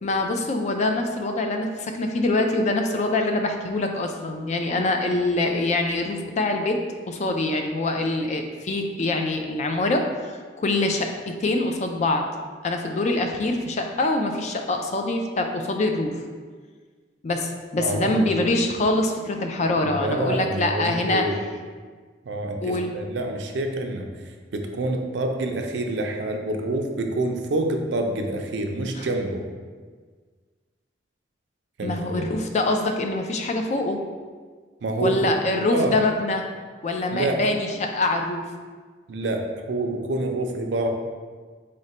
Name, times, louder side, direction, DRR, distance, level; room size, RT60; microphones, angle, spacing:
voice 1, 0.0-6.8 7.1-12.3 12.6-16.2 17.2-21.3 22.6-22.9 29.0-29.1 31.8-34.0 35.0-36.4 36.8-38.4, left 2 dB, 40° left, 4 dB, 0.3 m, -24 dB
voice 2, 17.8-18.3 19.8-21.4 22.2-29.5 31.8-32.3 34.8-35.4 35.7-35.9 37.1-37.4 39.1-40.9, right 2 dB, 85° right, 3 dB, 0.4 m, -27 dB
3.7 x 2.1 x 4.1 m, 1.5 s
head